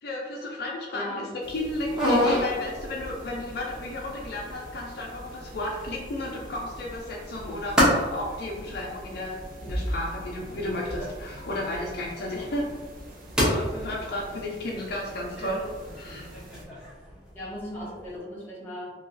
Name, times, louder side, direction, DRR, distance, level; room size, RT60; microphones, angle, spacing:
voice 1, 0.0-12.7 13.4-16.3, left 1 dB, 65° left, -2 dB, 0.5 m, -33 dB
voice 2, 0.9-1.3 14.3-14.4 17.3-18.9, left 1 dB, 15° left, -7 dB, 1.0 m, -37 dB
sound 1, 1.4-18.2, equal, 5° right, 0.7 m, -32 dB
sound 2, 1.4-16.7, right 1 dB, 55° right, 0.5 m, -43 dB
2.9 x 2.3 x 2.5 m, 1.4 s
head